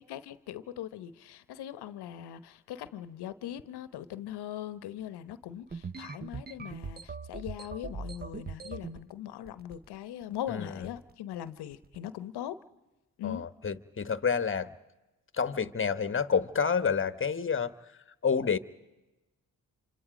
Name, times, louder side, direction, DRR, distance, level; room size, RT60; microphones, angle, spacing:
voice 1, 0.0-12.6 13.2-13.4, left 11 dB, 90° left, 0.9 m, -40 dB
sound 1, 5.7-9.0 9.5-10.0 10.2-10.5 10.8-11.1 11.7-12.0, right 4 dB, 25° right, 0.7 m, -41 dB
voice 2, 10.5-10.9 13.2-14.7 15.3-17.7 18.2-18.6, left 6 dB, 30° left, 1.2 m, -29 dB
27.5 x 26.0 x 5.1 m
supercardioid pair, 55°, 38 cm